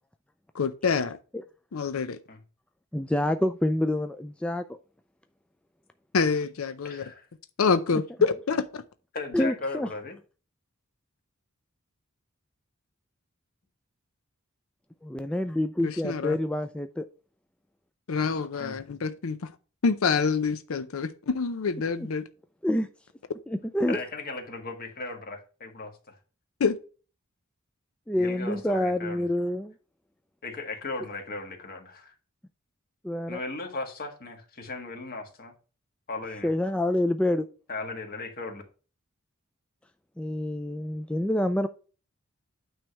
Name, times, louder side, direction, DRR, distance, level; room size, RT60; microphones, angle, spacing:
voice 1, 0.5-1.2 1.7-2.2 6.1-7.0 7.6-8.8 15.8-16.4 18.1-19.4 19.8-22.2 26.6-26.8, left 5 dB, 90° left, 0.6 m, -26 dB
voice 2, 2.9-4.8 7.9-8.0 9.3-9.9 15.0-17.0 22.0-22.1 22.6-22.9 23.5-24.0 28.1-29.7 33.0-33.4 36.4-37.5 40.2-41.7, left 1 dB, 5° left, 0.3 m, -27 dB
voice 3, 6.8-7.3 9.1-10.2 18.6-18.8 23.9-26.2 28.2-29.2 30.4-32.1 33.3-35.5 36.1-36.5 37.7-38.6, left 3 dB, 45° left, 1.6 m, -37 dB
9.1 x 3.3 x 5.7 m
head